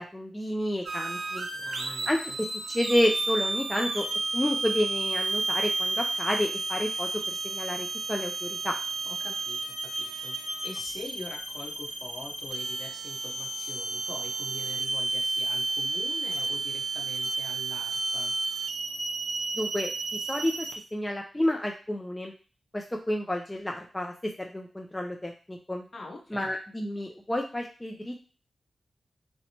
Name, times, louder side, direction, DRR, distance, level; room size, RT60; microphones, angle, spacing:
voice 1, 0.0-1.5 2.1-2.2 2.7-4.1 4.3-8.8 19.6-22.3 22.7-25.9 26.3-28.3, left 1 dB, 15° left, 1 dB, 0.3 m, -30 dB
sound 1, 0.8-20.7, right 3 dB, 75° right, 0.4 m, -32 dB
voice 2, 1.5-2.1 9.0-18.3 25.9-26.5, left 2 dB, 60° left, 0 dB, 0.7 m, -44 dB
2.8 x 2.1 x 2.8 m, 0.36 s
cardioid pair, 50°, 0 cm